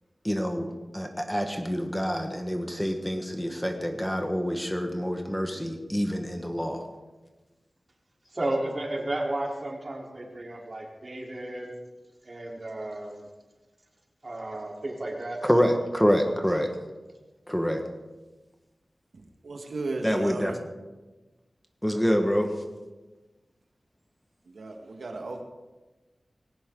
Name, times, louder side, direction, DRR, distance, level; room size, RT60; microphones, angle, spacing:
voice 1, 0.2-0.7 0.9-6.8 15.4-16.7 17.5-17.8 20.0-20.5 21.8-22.5, equal, 5° left, 4 dB, 1.7 m, -26 dB
voice 2, 8.3-11.7 12.2-13.3 14.2-15.4, right 1 dB, 40° right, -2 dB, 4.0 m, -33 dB
voice 3, 19.4-20.6 24.5-25.4, right 2 dB, 85° right, 2 dB, 1.8 m, -35 dB
19.5 x 17.5 x 4.0 m, 1.2 s
wide cardioid pair, 90°, 0 cm